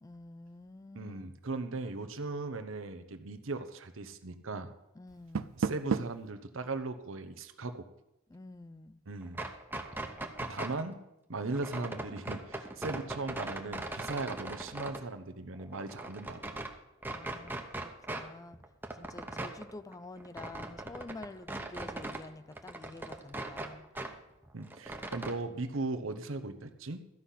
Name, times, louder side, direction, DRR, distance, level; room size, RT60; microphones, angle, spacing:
voice 1, 0.0-1.3 5.0-5.6 8.3-9.0 17.1-18.6 18.9-23.9, left 2 dB, 15° left, 14 dB, 0.4 m, -48 dB
voice 2, 0.9-4.7 5.6-7.8 9.1-9.4 10.4-11.0 11.3-16.6 24.5-27.0, right 3 dB, 70° right, 9 dB, 0.9 m, -38 dB
Door, 5.1-6.3, right 5 dB, 90° right, 0.5 m, -33 dB
sound 1, 9.2-10.8 11.5-15.0 15.5-16.7 17.0-18.3 18.5-22.3 22.5-24.1 24.4-25.3, right 2 dB, 10° right, 0.9 m, -40 dB
13.5 x 5.7 x 8.3 m, 0.88 s
head